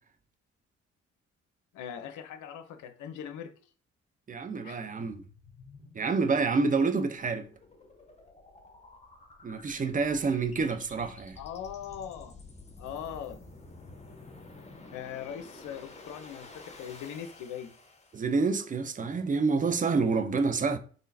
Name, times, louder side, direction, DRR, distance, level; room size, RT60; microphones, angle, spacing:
voice 1, 1.7-3.5 4.6-4.8 11.4-12.3 12.8-13.4 14.9-17.7, left 9 dB, 55° left, 0.6 m, -40 dB
voice 2, 4.3-5.2 5.9-7.5 9.4-11.4 18.1-20.8, right 4 dB, 20° right, 0.5 m, -28 dB
sound 1, 5.1-18.5, left 3 dB, 20° left, 0.9 m, -51 dB
3.7 x 3.2 x 2.6 m
figure-of-eight pair, 40°, 36 cm